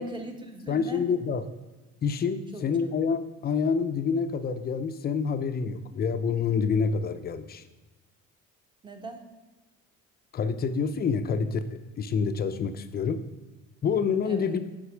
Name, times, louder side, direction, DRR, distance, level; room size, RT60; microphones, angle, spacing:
voice 1, 0.0-1.0 2.5-2.9 8.8-9.2 14.2-14.5, right 2 dB, 15° right, 4 dB, 1.0 m, -40 dB
voice 2, 0.7-1.4 2.0-7.6 10.3-13.2 13.8-14.6, left 6 dB, 35° left, 11 dB, 0.5 m, -27 dB
8.2 x 5.3 x 6.1 m, 1.2 s
cardioid pair, 145°, 29 cm